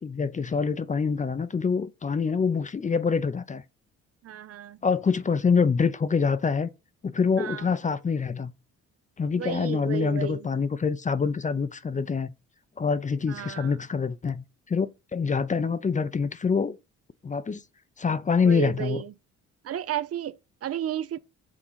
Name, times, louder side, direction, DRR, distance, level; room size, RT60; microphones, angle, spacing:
voice 1, 0.0-3.6 4.8-6.7 7.0-8.5 9.2-12.3 12.8-16.8 17.2-17.6 18.0-19.0, left 5 dB, 25° left, 0.6 m, -25 dB
voice 2, 4.2-4.8 7.4-7.7 9.4-10.5 13.2-13.8 18.4-19.1 19.6-21.2, right 11 dB, 50° right, 0.5 m, -33 dB
6.3 x 3.9 x 5.6 m
cardioid pair, 90°, 30 cm